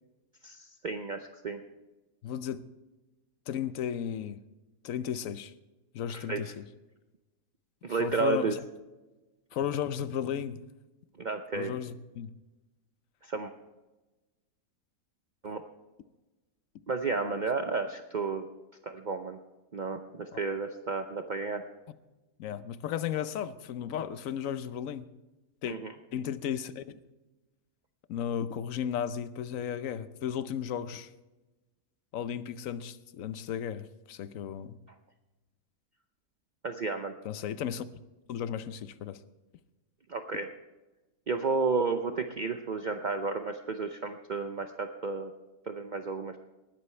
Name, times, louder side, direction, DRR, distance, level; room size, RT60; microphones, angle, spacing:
voice 1, 0.4-1.6 6.1-6.4 7.8-8.6 11.2-11.7 13.2-13.5 15.4-15.6 16.9-18.4 18.8-19.4 19.7-21.6 25.7-25.9 36.6-37.1 40.1-40.5 41.3-45.3 45.7-46.4, right 4 dB, 60° right, 6 dB, 0.5 m, -32 dB
voice 2, 2.2-2.6 3.5-4.4 4.8-5.5 5.9-6.6 8.0-8.6 9.5-10.6 11.5-12.3 20.3-20.4 22.4-25.1 25.6-25.8 26.1-27.0 28.1-31.1 32.1-34.8 37.2-37.8 38.3-39.2, left 9 dB, 60° left, 14 dB, 1.0 m, -34 dB
19.5 x 12.0 x 3.3 m, 1.1 s
omnidirectional pair, 1.8 m